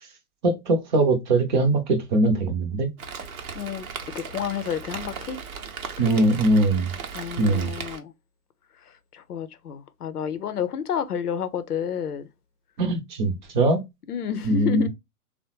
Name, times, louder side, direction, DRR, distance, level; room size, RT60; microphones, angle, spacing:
voice 1, 0.4-2.9 6.0-6.9 7.4-7.7 12.8-13.8 14.5-14.9, right 2 dB, 30° right, 0.7 m, -21 dB
Rain, 3.0-8.0, right 6 dB, 65° right, 0.8 m, -37 dB
voice 2, 3.5-3.9 4.1-5.4 6.2-6.3 7.1-8.1 8.9-12.3 14.1-14.9, left 7 dB, 75° left, 0.7 m, -30 dB
3.4 x 2.1 x 2.9 m
figure-of-eight pair, 120°, 46 cm